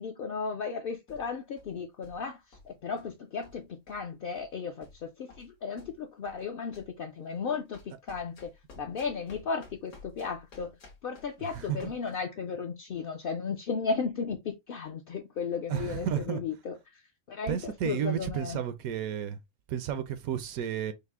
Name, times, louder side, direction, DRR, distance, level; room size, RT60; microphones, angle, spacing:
voice 1, 0.0-8.5 8.8-17.0 17.3-18.6, left 5 dB, 60° left, 0.6 m, -35 dB
sound 1, 1.1-1.8 2.0-2.3 2.5-3.1 3.4-4.1 4.3-4.5 4.8-6.5 6.7-7.0 7.7-12.2, left 3 dB, 75° left, 1.7 m, -53 dB
voice 2, 15.7-16.4 17.5-19.4 19.7-20.9, right 9 dB, 75° right, 1.0 m, -32 dB
5.5 x 2.1 x 3.5 m
omnidirectional pair, 1.5 m